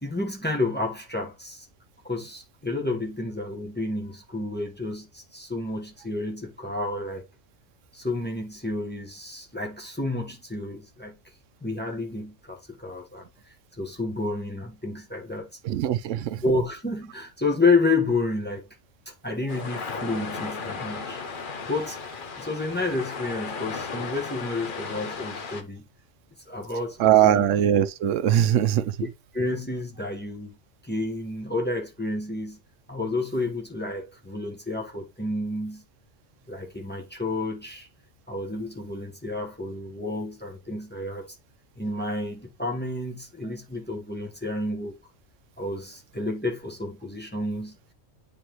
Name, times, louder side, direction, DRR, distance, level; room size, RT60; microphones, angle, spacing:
voice 1, 0.0-1.7 2.0-7.2 7.9-11.2 11.6-13.2 13.8-15.5 16.4-18.7 19.1-21.2 21.6-22.0 22.4-25.8 26.5-27.5 29.0-29.1 29.3-30.6 30.8-32.6 32.9-35.8 36.5-37.9 38.3-41.3 41.8-45.0 45.6-47.8, left 2 dB, 10° left, 1.1 m, -30 dB
voice 2, 15.6-16.4 27.0-28.9, right 11 dB, 90° right, 0.9 m, -21 dB
sound 1, 19.5-25.6, left 4 dB, 50° left, 0.9 m, -35 dB
9.5 x 3.4 x 3.0 m
omnidirectional pair, 1.2 m